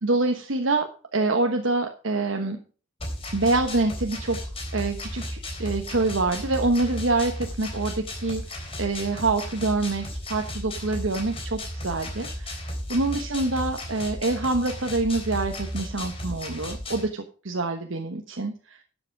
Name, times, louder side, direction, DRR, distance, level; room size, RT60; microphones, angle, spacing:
voice 1, 0.0-2.6 3.3-4.4 4.7-18.8, right 3 dB, 70° right, 4 dB, 1.2 m, -26 dB
sound 1, 3.0-17.0, left 1 dB, 30° left, 3.6 m, -34 dB
12.0 x 7.8 x 4.7 m, 0.37 s
head